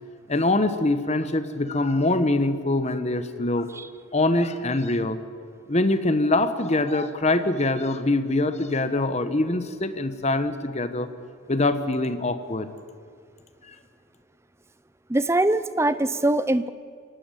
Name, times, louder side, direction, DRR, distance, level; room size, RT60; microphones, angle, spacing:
voice 1, 0.3-3.7 4.1-5.2 5.7-11.1 11.5-12.7 13.7-13.8, left 2 dB, 30° left, 11 dB, 1.0 m, -24 dB
voice 2, 15.1-16.7, right 1 dB, 15° right, 14 dB, 0.5 m, -22 dB
25.0 x 12.0 x 9.1 m, 2.1 s
head